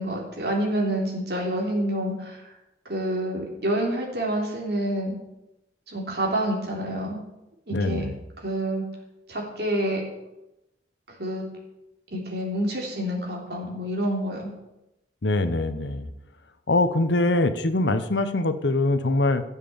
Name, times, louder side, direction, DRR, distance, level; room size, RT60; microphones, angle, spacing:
voice 1, 0.0-2.5 2.9-5.2 5.9-7.2 7.7-8.1 8.4-8.8 9.3-10.0 11.1-11.5 12.1-14.5, right 1 dB, 60° right, -1 dB, 3.4 m, -28 dB
voice 2, 7.7-8.2 15.2-16.1 16.7-19.4, left 2 dB, 75° left, 10 dB, 1.0 m, -23 dB
12.5 x 7.5 x 7.1 m, 0.93 s
head